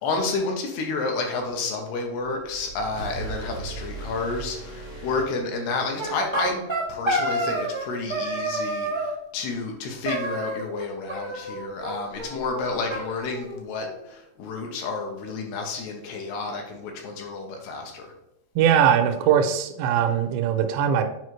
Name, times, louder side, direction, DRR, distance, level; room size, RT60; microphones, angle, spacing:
voice 1, 0.0-6.6 6.9-18.1, left 3 dB, 75° left, 2 dB, 2.7 m, -30 dB
sound 1, 2.4-6.0, right 3 dB, 40° left, 1.0 m, -38 dB
sound 2, 6.0-9.1 10.0-10.8 11.1-11.9 12.2-12.3 12.5-12.6 12.9-13.9, right 1 dB, 50° right, 0.3 m, -29 dB
voice 2, 18.6-21.0, right 8 dB, 85° right, 7 dB, 2.8 m, -21 dB
7.8 x 5.0 x 3.1 m, 0.87 s
omnidirectional pair, 5.0 m